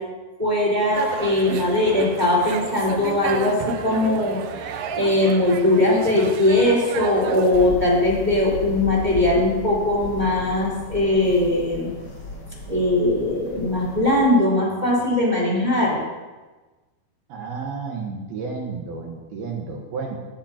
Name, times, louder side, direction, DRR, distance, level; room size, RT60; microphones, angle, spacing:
voice 1, 0.4-4.4 4.7-11.9 12.7-15.9, left 1 dB, 10° right, -5 dB, 3.2 m, -20 dB
sound 1, 0.9-7.7, right 7 dB, 85° right, 1.9 m, -33 dB
sound 2, 7.5-14.2, left 3 dB, 85° left, 1.1 m, -35 dB
voice 2, 17.3-20.2, right 4 dB, 65° right, 0 dB, 2.9 m, -31 dB
18.0 x 12.5 x 2.9 m, 1.2 s
omnidirectional pair, 5.2 m